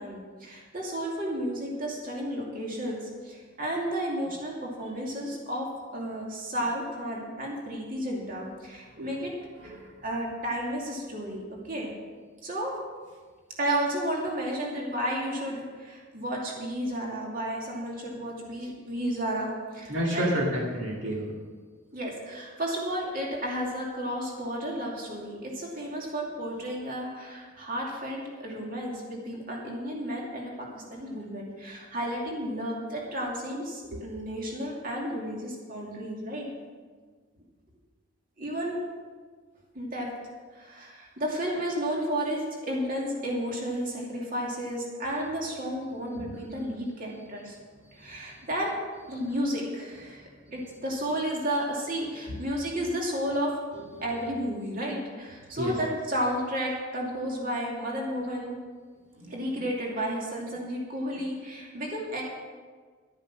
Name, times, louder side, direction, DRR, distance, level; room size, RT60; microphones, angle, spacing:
voice 1, 0.0-5.7 5.9-9.3 9.6-9.8 10.0-11.9 12.4-12.8 13.6-20.3 21.9-36.5 38.4-38.8 39.7-47.6 47.9-48.7 49.1-53.6 54.0-58.6 59.3-62.2, equal, 40° right, -2 dB, 2.6 m, -32 dB
voice 2, 9.6-9.9 19.9-21.3 33.9-34.0 52.3-52.4 53.7-54.0 55.6-55.8 59.2-59.3, equal, 60° right, -3 dB, 2.2 m, -30 dB
12.0 x 10.0 x 6.2 m, 1.5 s
head